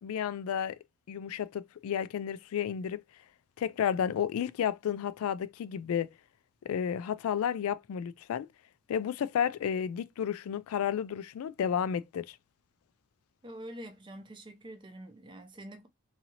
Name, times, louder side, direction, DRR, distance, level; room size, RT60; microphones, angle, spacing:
voice 1, 0.0-0.8 1.1-3.0 3.6-6.1 6.6-8.5 8.9-12.4, left 8 dB, 90° left, 0.3 m, -32 dB
voice 2, 13.4-15.9, right 1 dB, 20° right, 0.4 m, -46 dB
2.7 x 2.7 x 2.8 m
head